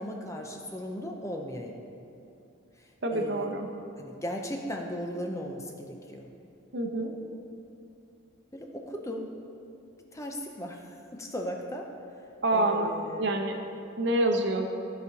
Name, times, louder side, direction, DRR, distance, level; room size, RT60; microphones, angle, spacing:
voice 1, 0.0-1.8 2.8-3.5 4.0-6.3 8.5-9.2 10.1-11.9 12.5-13.3, equal, 15° left, 2 dB, 0.6 m, -37 dB
voice 2, 3.0-3.7 6.7-7.1 12.4-12.9 13.2-13.6 14.0-14.7, right 1 dB, 55° right, 4 dB, 0.8 m, -27 dB
14.0 x 5.2 x 4.0 m, 2.6 s
head